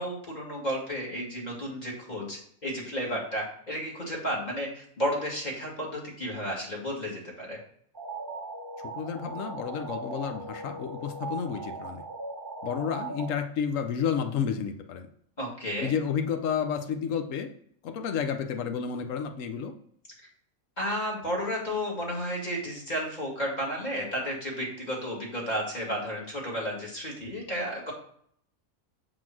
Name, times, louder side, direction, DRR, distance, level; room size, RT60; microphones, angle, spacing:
voice 1, 0.0-7.6 15.4-15.9 20.8-27.9, equal, 30° left, -3 dB, 2.3 m, -32 dB
sound 1, 7.9-13.3, right 3 dB, 20° right, 1.1 m, -39 dB
voice 2, 9.0-12.0 12.6-15.1 15.8-17.5 17.8-19.7, left 7 dB, 70° left, 6 dB, 1.1 m, -31 dB
6.9 x 3.9 x 6.1 m, 0.64 s
omnidirectional pair, 1.4 m